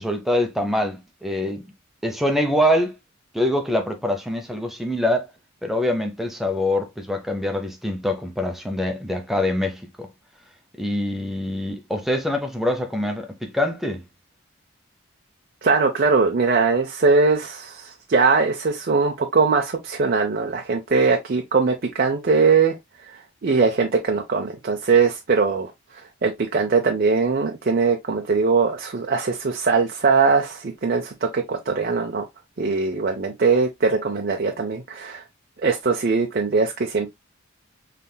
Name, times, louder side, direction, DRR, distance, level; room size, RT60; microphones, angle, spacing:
voice 1, 0.0-1.7 2.0-2.9 3.3-5.3 5.6-10.1 10.8-14.0, left 1 dB, ahead, 0.7 m, -24 dB
voice 2, 15.6-22.8 23.4-32.3 32.6-35.2 35.6-37.1, right 4 dB, 45° right, 0.6 m, -21 dB
5.4 x 3.3 x 2.2 m
head